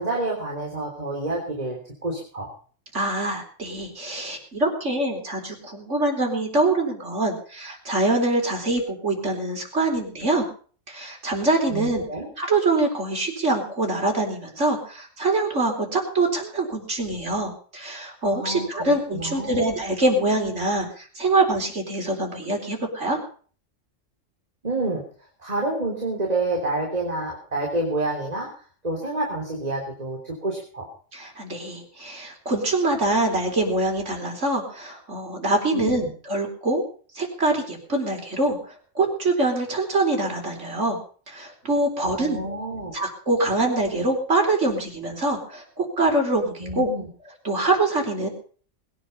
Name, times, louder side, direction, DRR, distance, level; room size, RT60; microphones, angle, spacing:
voice 1, 0.0-2.5 11.7-12.3 18.3-19.6 24.6-25.0 25.4-30.9 35.7-36.1 42.0-42.9 46.6-47.1, right 2 dB, 30° right, -1 dB, 3.7 m, -28 dB
voice 2, 2.9-10.5 10.9-12.0 12.4-23.2 31.1-36.8 37.1-41.0 41.3-42.4 42.9-46.9 47.4-48.3, right 2 dB, 65° right, 2 dB, 4.5 m, -24 dB
21.0 x 10.0 x 5.5 m, 0.43 s
omnidirectional pair, 1.3 m